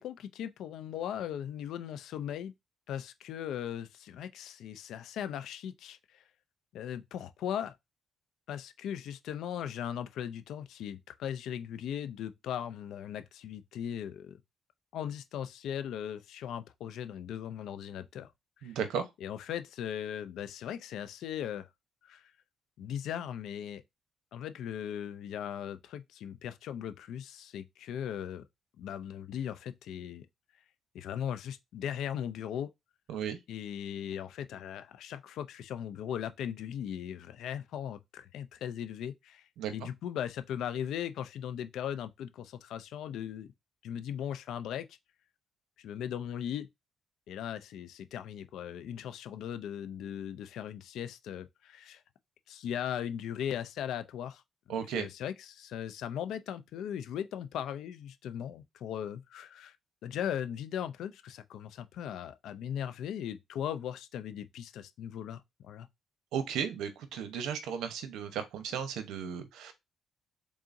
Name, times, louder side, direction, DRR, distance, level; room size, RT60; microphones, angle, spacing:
voice 1, 0.0-2.5 2.9-6.2 6.7-7.7 8.5-14.4 14.9-18.3 18.6-18.7 19.2-21.7 22.0-22.2 22.8-23.8 24.3-28.4 28.8-30.3 30.9-32.7 33.5-39.5 39.7-43.5 43.8-45.0 45.8-46.7 47.3-52.0 52.5-54.4 54.7-59.7 60.0-65.9, left 9 dB, 80° left, 0.4 m, -38 dB
voice 2, 18.6-19.0 33.1-33.4 39.6-39.7 54.7-55.1 66.3-69.7, right 7 dB, 85° right, 0.8 m, -35 dB
3.9 x 3.6 x 2.6 m
cardioid pair, 90°, 0 cm